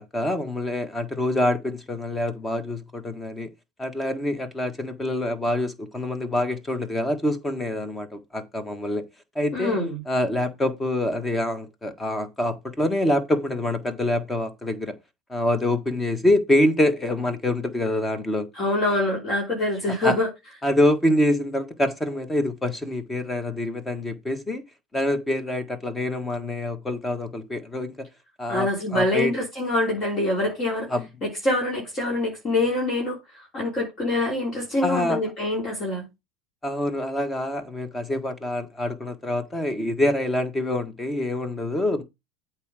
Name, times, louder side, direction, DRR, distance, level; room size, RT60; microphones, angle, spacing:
voice 1, 0.0-3.5 3.8-9.0 9.3-9.8 10.1-15.0 15.3-18.5 20.0-20.1 20.6-24.6 24.9-27.9 28.4-28.7 28.9-29.3 30.9-31.1 34.8-35.2 36.6-42.0, left 1 dB, 15° left, 1.5 m, -25 dB
voice 2, 9.5-10.0 18.5-20.3 28.5-30.9 31.2-33.2 33.5-36.0, left 2 dB, 35° left, 3.1 m, -25 dB
8.3 x 4.6 x 4.9 m
supercardioid pair, 130°, 0 cm